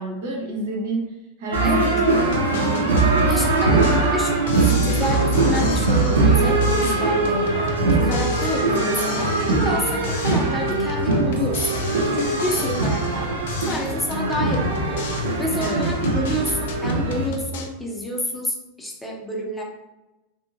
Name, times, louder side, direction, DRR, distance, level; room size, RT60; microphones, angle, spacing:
voice 1, 0.0-2.1 2.5-3.8 15.6-15.9, right 2 dB, 70° right, -2 dB, 0.9 m, -29 dB
sound 1, 1.5-17.3, right 3 dB, 90° right, 0.5 m, -21 dB
voice 2, 1.6-1.9 3.3-7.4 7.9-11.8 12.1-19.6, left 1 dB, 10° left, -1 dB, 0.6 m, -29 dB
sound 2, 2.2-6.3 6.6-9.8 10.0-13.2 13.5-17.7, left 4 dB, 75° left, 0.5 m, -31 dB
2.7 x 2.5 x 2.5 m, 1.0 s
hypercardioid pair, 95°, 0 cm